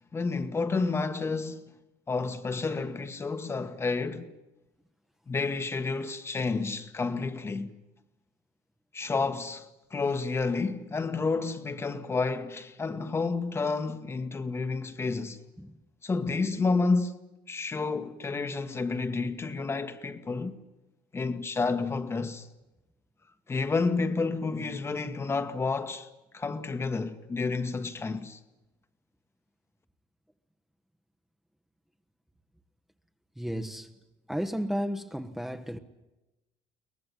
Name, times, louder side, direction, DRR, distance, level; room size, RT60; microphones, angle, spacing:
voice 1, 0.1-1.7 2.1-4.3 5.3-7.8 8.9-15.4 16.0-17.2 17.5-20.6 21.1-22.5 23.5-26.1 26.3-28.4, left 4 dB, 25° left, 1.4 m, -30 dB
voice 2, 33.4-33.9 34.3-35.8, equal, 5° right, 1.1 m, -33 dB
23.0 x 18.5 x 9.9 m
cardioid pair, 105°, 11 cm